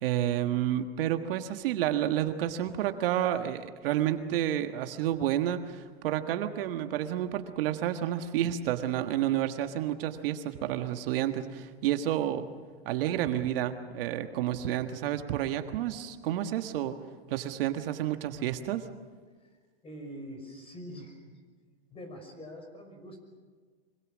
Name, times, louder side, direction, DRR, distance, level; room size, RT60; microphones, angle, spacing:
voice 1, 0.0-12.5 12.9-17.0 17.3-18.8, right 11 dB, 65° right, 7 dB, 1.6 m, -30 dB
voice 2, 19.8-21.4 21.9-23.2, equal, 20° left, 5 dB, 5.8 m, -44 dB
25.0 x 24.5 x 6.3 m, 1.5 s
supercardioid pair, 140°, 31 cm